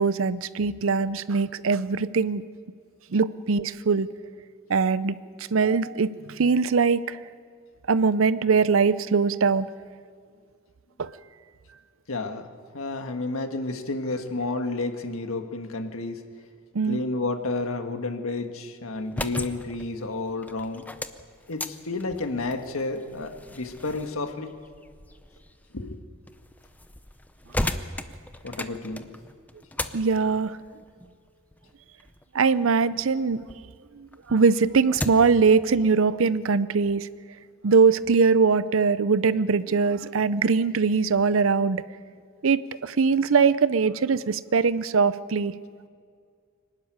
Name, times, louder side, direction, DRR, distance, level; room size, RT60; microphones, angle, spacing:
voice 1, 0.0-2.4 3.1-4.1 4.7-7.2 7.9-9.7 11.0-11.1 16.7-17.0 27.8-27.9 29.9-30.6 32.3-33.4 33.9-37.1 37.6-41.8 42.4-45.6, right 5 dB, 75° right, 16 dB, 0.6 m, -22 dB
voice 2, 12.1-12.5 12.7-16.2 16.9-20.8 21.5-24.5 25.7-26.0 28.4-29.1, left 2 dB, 85° left, 6 dB, 1.6 m, -31 dB
sound 1, 18.9-33.6 34.0-35.4, left 1 dB, 10° left, 0.6 m, -37 dB
23.5 x 12.5 x 9.5 m, 2.1 s
head